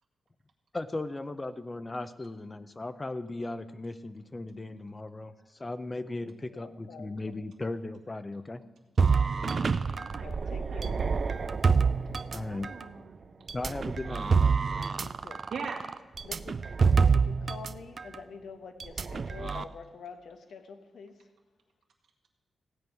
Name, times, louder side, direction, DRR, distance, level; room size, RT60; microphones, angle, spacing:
voice 1, 0.7-5.3 5.6-8.6 12.3-12.7 13.5-14.6, left 2 dB, 20° left, 13 dB, 0.5 m, -37 dB
voice 2, 6.2-7.5 9.6-11.0 15.0-15.5 16.2-16.6 17.1-21.3, left 5 dB, 85° left, 8 dB, 1.0 m, -47 dB
sound 1, 9.0-12.8 13.5-17.7 18.0-18.2 18.8-19.6, right 5 dB, 40° right, 0.4 m, -27 dB
voice 3, 10.0-10.9 12.4-13.3 15.5-15.8, right 5 dB, 85° right, 1 dB, 1.9 m, -41 dB
16.0 x 5.3 x 9.3 m, 1.2 s
wide cardioid pair, 150°, 0 cm